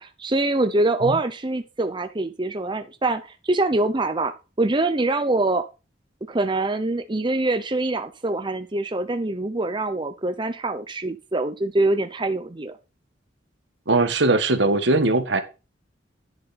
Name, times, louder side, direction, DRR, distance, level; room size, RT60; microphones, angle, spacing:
voice 1, 0.0-4.3 4.6-5.7 6.3-12.7, right 2 dB, 25° right, 7 dB, 0.8 m, -24 dB
voice 2, 13.9-15.4, right 2 dB, 80° right, 9 dB, 1.6 m, -20 dB
10.5 x 6.8 x 4.3 m, 0.29 s
head